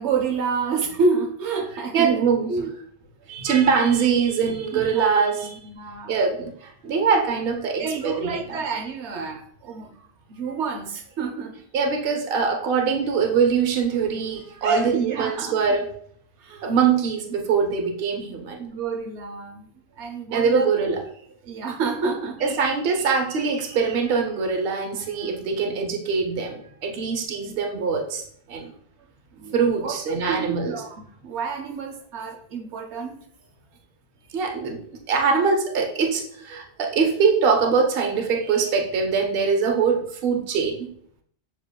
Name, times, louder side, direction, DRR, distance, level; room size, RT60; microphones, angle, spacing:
voice 1, 0.0-2.2 2.5-2.7 4.7-5.1 5.4-6.2 7.8-11.6 14.6-15.6 16.4-16.7 18.4-19.7 20.0-20.7 21.4-22.6 29.3-33.2, right 4 dB, 90° right, 3 dB, 1.0 m, -28 dB
voice 2, 1.9-2.5 3.3-5.6 6.1-8.6 11.7-15.9 16.6-18.7 20.3-21.0 22.4-28.7 29.5-30.8 34.3-34.8 35.1-40.9, right 5 dB, 60° right, 3 dB, 0.9 m, -23 dB
6.8 x 3.0 x 2.3 m, 0.63 s
omnidirectional pair, 1.1 m